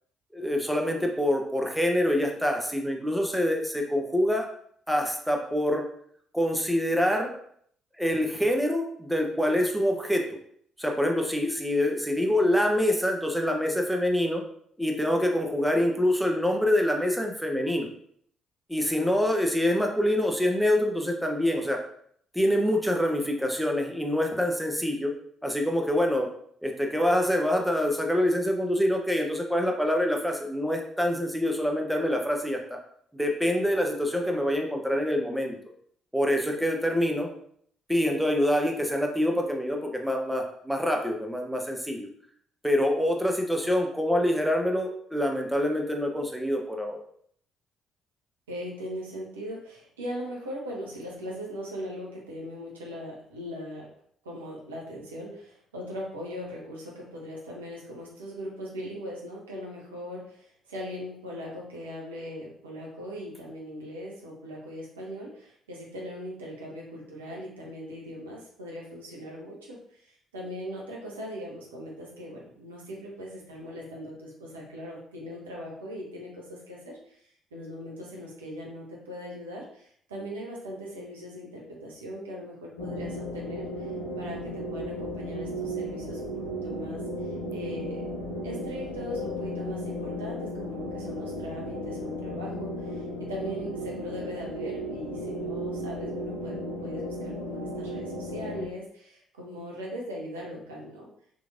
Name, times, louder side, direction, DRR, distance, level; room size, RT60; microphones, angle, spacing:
voice 1, 0.3-4.5 4.9-5.8 6.3-7.3 8.0-10.2 10.8-14.4 14.8-17.9 18.7-21.8 22.3-25.1 25.4-26.3 26.6-32.8 33.1-35.6 36.1-37.3 37.9-42.1 42.6-47.0, left 1 dB, ahead, 1 dB, 0.7 m, -26 dB
voice 2, 48.5-53.9 54.2-83.9 84.2-88.0 88.4-101.1, equal, 80° right, -2 dB, 0.7 m, -39 dB
sound 1, 82.8-98.7, equal, 85° left, 0.5 m, -35 dB
3.7 x 3.0 x 2.5 m, 0.65 s
figure-of-eight pair, 45°, 0 cm